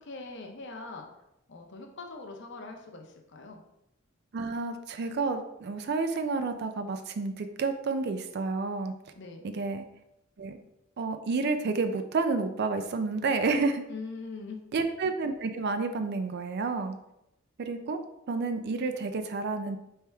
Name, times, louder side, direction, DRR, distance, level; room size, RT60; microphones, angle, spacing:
voice 1, 0.0-1.1 1.5-3.6 9.1-9.5 13.9-14.6, left 3 dB, 60° left, 3 dB, 0.7 m, -42 dB
voice 2, 4.3-8.9 9.4-9.9 10.4-10.6 11.0-13.8 14.7-17.0 17.6-18.0 18.3-19.8, right 3 dB, 50° right, 7 dB, 0.4 m, -30 dB
4.5 x 3.4 x 3.4 m, 0.85 s
head